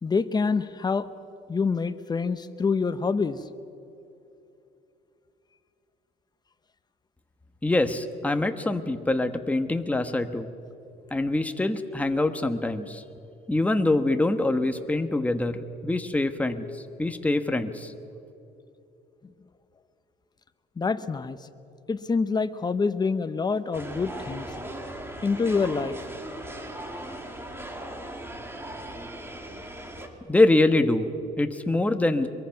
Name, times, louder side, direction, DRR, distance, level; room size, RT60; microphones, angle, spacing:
voice 1, 0.0-1.1 1.5-3.4 20.8-21.5 21.9-24.5 25.2-26.0, left 4 dB, 25° left, 12 dB, 1.0 m, -26 dB
voice 2, 7.6-10.5 11.1-13.0 13.5-16.7 17.0-17.9 30.3-32.3, left 2 dB, 10° left, 7 dB, 1.2 m, -24 dB
sound 1, 23.7-30.1, right 1 dB, 15° right, 2.6 m, -38 dB
23.5 x 22.5 x 5.9 m, 2.7 s
cardioid pair, 110°, 17 cm